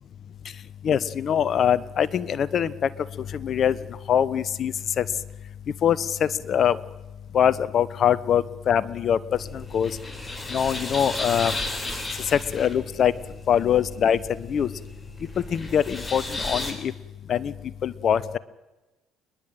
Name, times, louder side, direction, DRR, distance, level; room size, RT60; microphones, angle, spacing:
voice 1, 0.8-2.9 3.2-5.1 5.8-6.8 7.3-9.2 9.5-10.0 10.5-11.6 12.2-13.1 13.5-14.7 15.5-16.9 17.3-17.5 17.8-18.4, left 9 dB, 50° left, 18 dB, 1.1 m, -23 dB
sound 1, 9.3-16.7, left 2 dB, 20° left, 4.1 m, -34 dB
29.0 x 11.0 x 9.2 m, 1.1 s
hypercardioid pair, 65°, 0 cm